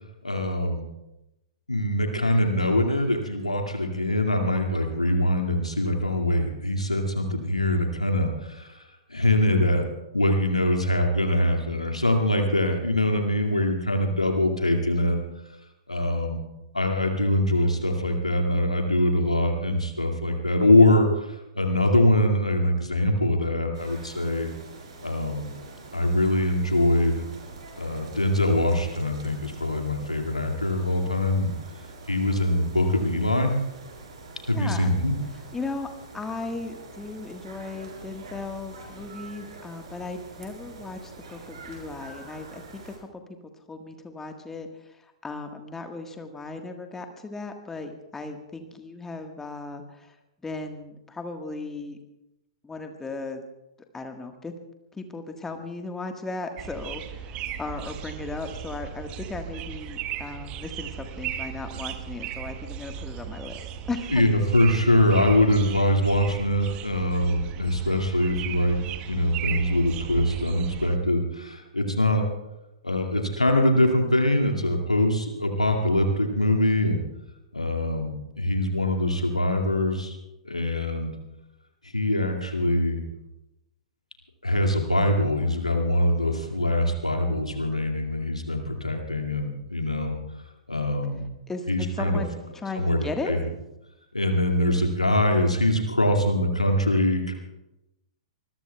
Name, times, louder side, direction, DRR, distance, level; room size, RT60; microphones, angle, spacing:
voice 1, 0.2-0.8 1.7-8.7 9.1-9.8 10.1-15.2 15.9-16.4 16.7-21.1 21.5-24.5 25.0-25.5 25.9-27.2 27.8-31.5 32.1-33.5 34.5-35.1 64.1-68.8 69.1-72.2 72.8-77.0 77.5-80.2 80.4-81.1 81.9-83.0 84.4-90.2 90.7-91.2 91.7-92.2 92.8-93.4 94.1-97.3, left 1 dB, 90° left, 2 dB, 2.3 m, -23 dB
sound 1, 23.7-43.0, right 3 dB, 60° right, 5.5 m, -45 dB
voice 2, 34.5-34.9 35.5-35.9 36.1-43.2 43.7-44.7 45.2-50.1 50.4-52.0 52.6-53.4 53.9-54.5 54.9-64.1 91.5-93.3, left 3 dB, 10° left, 5 dB, 1.5 m, -36 dB
sound 2, 56.6-71.0, right 9 dB, 30° right, 1.1 m, -36 dB
25.0 x 21.0 x 2.3 m, 0.95 s
figure-of-eight pair, 110°, 3 cm